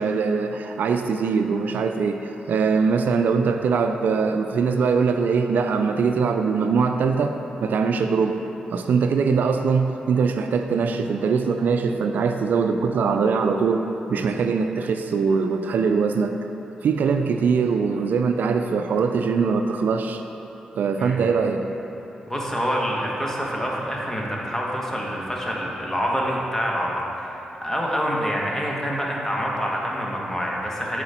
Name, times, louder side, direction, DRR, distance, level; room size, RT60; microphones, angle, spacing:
voice 1, 0.0-8.4 8.7-16.3 16.8-20.2 20.8-21.6, right 5 dB, 70° right, 6 dB, 0.4 m, -22 dB
voice 2, 22.3-31.0, equal, 15° left, -2 dB, 1.5 m, -26 dB
7.8 x 4.9 x 4.3 m, 3.0 s
supercardioid pair, 45°, 3 cm